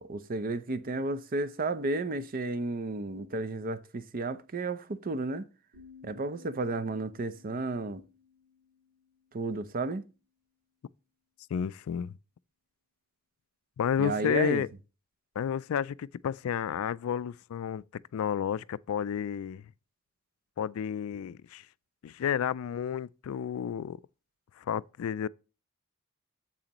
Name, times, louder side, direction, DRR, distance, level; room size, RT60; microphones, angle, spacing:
voice 1, 0.0-5.4 6.0-8.0 9.3-10.0 14.0-14.6, right 3 dB, 45° right, 0.6 m, -32 dB
sound 1, 5.7-9.6, left 6 dB, 80° right, 3.1 m, -56 dB
voice 2, 11.5-12.1 13.8-14.7 15.4-19.6 20.6-21.7 22.0-24.0 24.6-25.3, left 8 dB, 80° left, 0.3 m, -31 dB
8.9 x 7.5 x 3.0 m
head